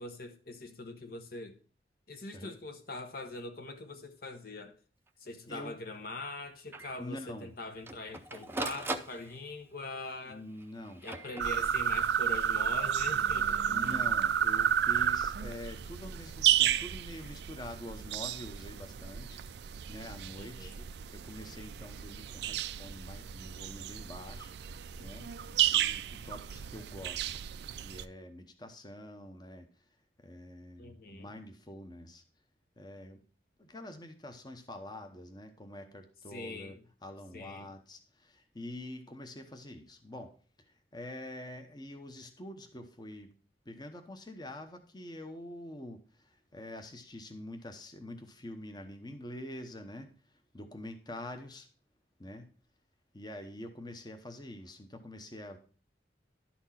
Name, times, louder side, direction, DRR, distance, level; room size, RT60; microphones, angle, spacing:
voice 1, 0.0-1.6 2.1-4.7 5.2-10.4 11.0-14.0 20.4-20.9 30.8-31.3 36.3-36.8 37.3-37.7, left 2 dB, 55° left, 1.0 m, -43 dB
Printer, 5.1-5.2 5.5-5.6 5.9-6.0 6.7-7.0 7.6-9.7 10.5-12.0 13.7-14.1, right 2 dB, 15° right, 0.6 m, -41 dB
voice 2, 5.5-5.8 7.0-7.5 10.3-11.0 13.6-19.4 19.9-20.7 21.1-24.5 25.0-25.3 25.7-27.2 27.8-29.7 30.2-32.2 32.8-33.2 33.6-40.3 40.7-43.3 43.6-51.7 52.2-52.5 53.1-55.6, left 1 dB, 25° left, 0.9 m, -46 dB
sound 1, 11.4-28.0, right 9 dB, 65° right, 0.4 m, -32 dB
11.5 x 4.4 x 5.7 m
head